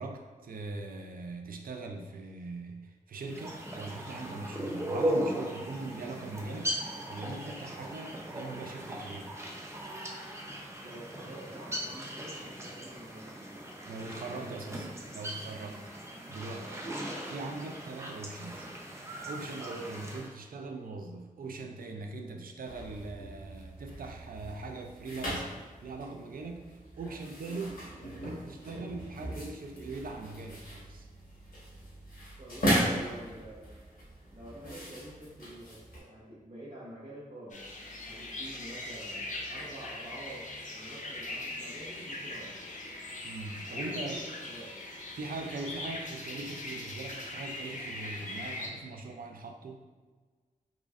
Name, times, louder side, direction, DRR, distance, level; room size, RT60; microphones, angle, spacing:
voice 1, 0.0-9.4 13.8-16.7 17.3-18.7 19.3-31.1 43.2-44.2 45.1-49.8, right 3 dB, 80° right, 4 dB, 0.4 m, -41 dB
sound 1, 3.3-20.3, equal, 20° right, 0.6 m, -38 dB
voice 2, 10.8-13.4 14.0-15.2 16.6-16.8 19.6-19.8 32.4-33.8 34.3-37.6 38.0-40.5 40.7-42.6 43.6-44.7, right 1 dB, 55° right, -10 dB, 0.9 m, -47 dB
sound 2, 22.7-36.0, equal, 85° left, 1.3 m, -37 dB
sound 3, 37.5-48.7, left 2 dB, 60° left, 0.6 m, -40 dB
3.7 x 3.0 x 2.4 m, 1.4 s
wide cardioid pair, 80°, 15 cm